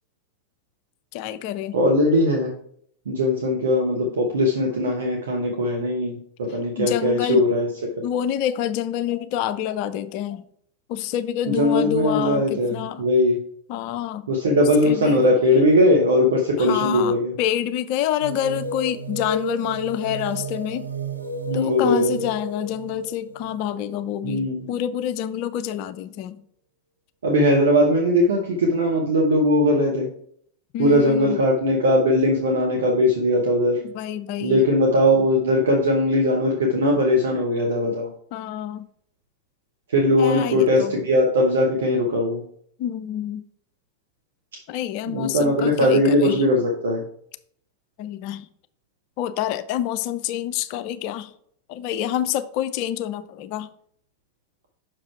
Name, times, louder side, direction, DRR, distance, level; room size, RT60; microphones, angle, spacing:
voice 1, 1.1-1.8 6.8-7.5 8.0-10.4 10.9-13.0 13.7-14.3 14.8-15.2 16.6-20.9 21.5-26.4 30.7-31.4 33.8-34.6 38.3-38.8 40.2-40.9 42.8-43.4 44.7-46.4 48.0-48.5 49.2-51.3 51.7-53.7, left 11 dB, 45° left, 0.5 m, -27 dB
voice 2, 1.7-2.5 3.1-7.7 11.6-13.4 14.3-17.3 21.5-22.1 24.2-24.6 27.2-30.1 30.8-33.8 34.4-38.1 39.9-42.4 45.1-47.0, left 1 dB, 65° right, 1.1 m, -20 dB
sound 1, 18.2-24.6, right 1 dB, 85° right, 0.7 m, -31 dB
6.0 x 4.8 x 4.6 m
figure-of-eight pair, 90°, 0 cm